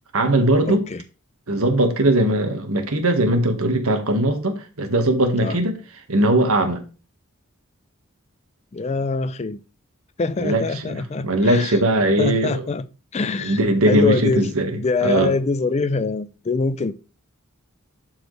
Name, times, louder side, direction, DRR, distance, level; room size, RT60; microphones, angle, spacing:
voice 1, 0.1-0.8 1.5-5.8 6.1-6.8 10.4-12.7 13.4-15.3, right 1 dB, 80° right, 1.7 m, -20 dB
voice 2, 0.7-1.0 5.4-5.6 8.7-9.6 10.2-11.8 12.2-12.9 13.1-13.6 13.9-16.9, left 3 dB, 30° left, 0.4 m, -24 dB
11.5 x 4.7 x 3.3 m
head